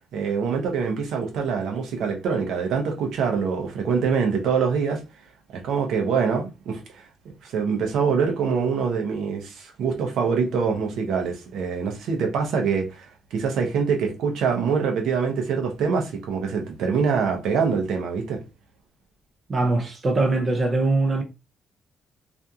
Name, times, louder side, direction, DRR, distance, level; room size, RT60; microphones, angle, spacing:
voice 1, 0.1-5.0 5.5-7.0 7.4-18.4, right 6 dB, 75° right, 0.7 m, -24 dB
voice 2, 19.5-21.2, right 2 dB, 25° right, 0.4 m, -22 dB
2.8 x 2.5 x 2.3 m
cardioid pair, 175°, 0 cm